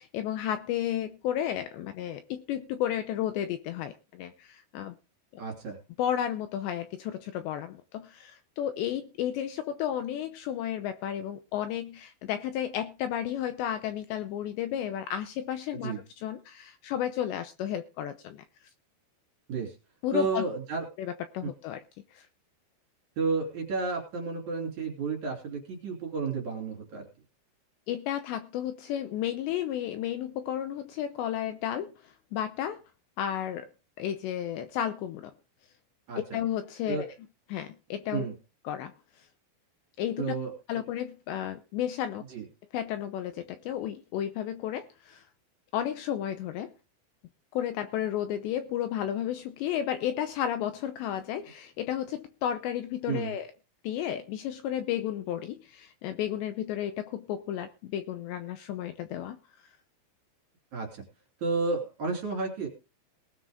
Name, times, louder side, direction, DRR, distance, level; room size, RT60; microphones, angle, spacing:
voice 1, 0.1-5.0 5.3-5.4 6.0-15.9 16.2-18.7 20.0-20.5 21.0-21.8 22.1-22.3 27.9-32.8 33.2-33.7 34.0-35.3 36.2-37.1 37.5-38.3 38.6-39.3 40.0-40.4 40.7-42.2 42.7-45.2 45.7-46.7 47.5-53.5 53.8-59.7, left 10 dB, 80° left, 9 dB, 2.7 m, -33 dB
voice 2, 5.4-5.8 15.8-16.0 19.5-19.7 20.1-20.9 21.4-21.5 23.2-27.1 36.1-36.2 36.9-37.1 38.1-38.3 40.2-40.5 42.3-42.4 53.1-53.3 60.7-61.0 61.4-62.7, right 4 dB, 40° right, 1 dB, 4.1 m, -31 dB
19.5 x 7.8 x 3.7 m, 0.32 s
omnidirectional pair, 5.6 m